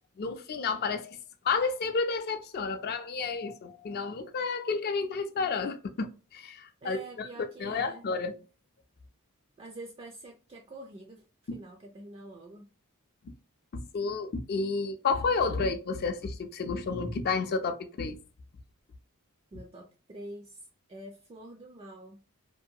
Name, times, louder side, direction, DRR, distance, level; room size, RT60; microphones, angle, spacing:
voice 1, 0.2-1.2 1.4-7.3 7.6-8.3 11.5-11.6 13.7-18.2, left 4 dB, 45° left, 0.4 m, -31 dB
voice 2, 6.8-8.0 9.6-11.2 11.5-12.7 19.5-22.2, right 2 dB, 25° right, 0.3 m, -46 dB
2.6 x 2.2 x 2.6 m
head